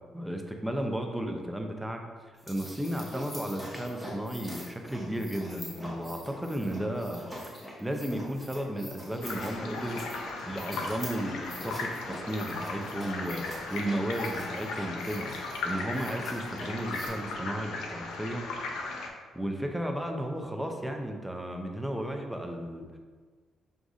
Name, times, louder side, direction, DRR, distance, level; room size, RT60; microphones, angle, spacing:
voice 1, 0.1-2.0 2.5-7.2 7.5-18.5 19.3-23.0, right 1 dB, 5° right, 3 dB, 0.5 m, -34 dB
sound 1, 2.3-17.1, equal, 20° left, 1.1 m, -44 dB
sound 2, 9.2-19.1, left 3 dB, 85° left, 0.4 m, -37 dB
6.0 x 2.5 x 2.4 m, 1.5 s
cardioid pair, 90°, 0 cm